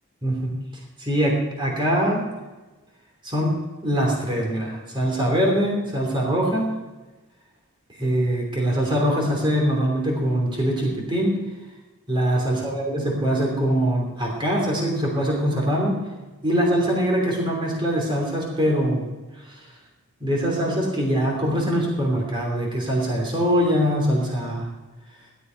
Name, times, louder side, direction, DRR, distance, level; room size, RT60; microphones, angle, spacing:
voice 1, 0.2-0.5 1.0-2.3 3.2-6.7 8.0-11.4 12.1-16.0 16.4-19.1 19.4-19.7 20.2-24.7, equal, 25° right, -2 dB, 3.1 m, -23 dB
16.5 x 12.5 x 4.6 m, 1.2 s
head